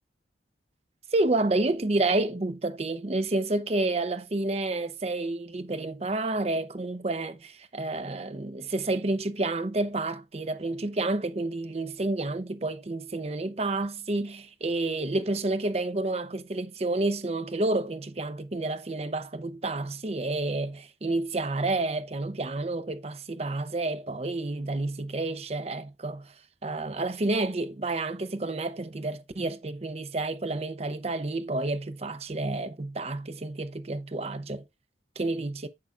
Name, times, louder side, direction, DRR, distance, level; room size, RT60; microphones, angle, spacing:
voice 1, 1.1-26.3 26.6-34.6 35.2-35.7, right 2 dB, 35° right, 0.6 m, -29 dB
8.5 x 5.9 x 2.4 m
head